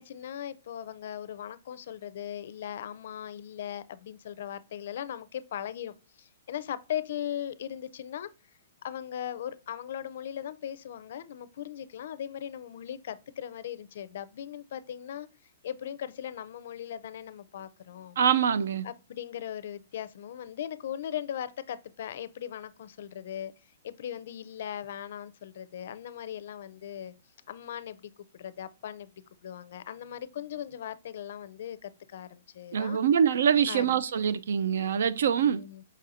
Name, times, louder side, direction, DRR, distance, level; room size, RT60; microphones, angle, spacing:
voice 1, 0.0-8.3 8.8-15.3 15.6-18.2 18.8-23.5 23.8-27.1 27.5-29.1 29.4-33.0 33.7-34.0 35.4-35.8, left 10 dB, 55° left, 0.4 m, -39 dB
voice 2, 18.2-18.9 32.7-35.6, right 8 dB, 70° right, 0.4 m, -24 dB
5.1 x 4.1 x 2.5 m
hypercardioid pair, 165°, 0 cm